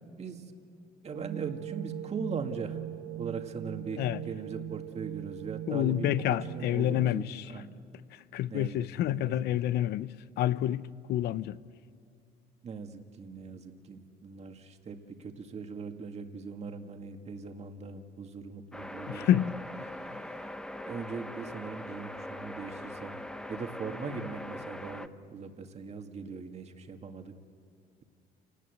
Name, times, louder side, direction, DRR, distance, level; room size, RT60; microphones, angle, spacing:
voice 1, 0.2-0.5 1.0-2.8 3.1-6.1 6.5-7.7 8.5-9.5 12.6-19.5 20.1-20.5 20.9-23.2 23.5-27.3, right 5 dB, 40° right, 2.0 m, -40 dB
sound 1, 1.1-7.1, right 12 dB, 65° right, 1.3 m, -40 dB
voice 2, 5.7-7.5 8.1-11.6 19.1-19.5 20.1-20.2, left 12 dB, 75° left, 0.7 m, -29 dB
sound 2, 18.7-25.1, left 1 dB, 5° left, 0.9 m, -41 dB
28.0 x 19.0 x 8.1 m
cardioid pair, 110°, 17 cm